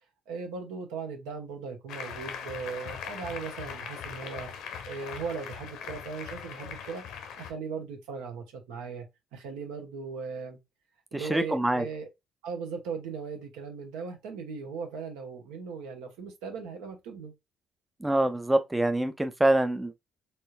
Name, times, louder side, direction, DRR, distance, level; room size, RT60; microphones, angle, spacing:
voice 1, 0.3-7.0 7.4-9.0 9.3-10.6 11.1-12.1 12.4-17.3, right 5 dB, 65° right, 1.0 m, -38 dB
Applause, 1.9-7.5, left 7 dB, 60° left, 0.7 m, -40 dB
voice 2, 11.1-11.9 18.0-19.9, right 1 dB, 10° right, 0.5 m, -25 dB
4.3 x 3.4 x 2.5 m
figure-of-eight pair, 45°, 0 cm